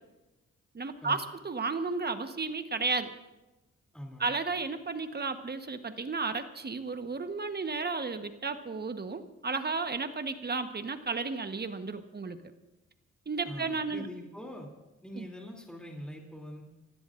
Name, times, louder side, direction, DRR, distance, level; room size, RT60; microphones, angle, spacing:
voice 1, 0.7-3.1 4.2-12.4 13.3-14.1 15.1-15.3, right 4 dB, 35° right, 8 dB, 1.1 m, -33 dB
voice 2, 3.9-4.3 13.4-14.7 15.0-16.6, equal, 5° left, 0 dB, 2.8 m, -43 dB
27.5 x 16.0 x 2.5 m, 1.0 s
cardioid pair, 70°, 29 cm